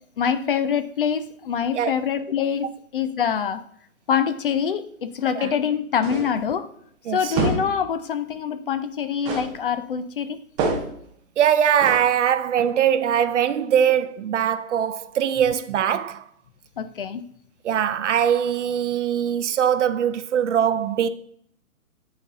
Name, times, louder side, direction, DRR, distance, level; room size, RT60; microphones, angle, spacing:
voice 1, 0.2-3.6 4.1-6.7 7.1-10.4 16.8-17.2, left 7 dB, 40° left, 0.5 m, -25 dB
sound 1, 6.0-6.4 7.3-7.8 9.2-9.6 10.6-11.0 11.8-12.1, right 3 dB, 10° right, 0.5 m, -26 dB
voice 2, 7.1-7.4 11.4-16.2 17.6-21.1, right 9 dB, 55° right, 0.6 m, -21 dB
9.6 x 4.3 x 3.9 m
hypercardioid pair, 140°, 43 cm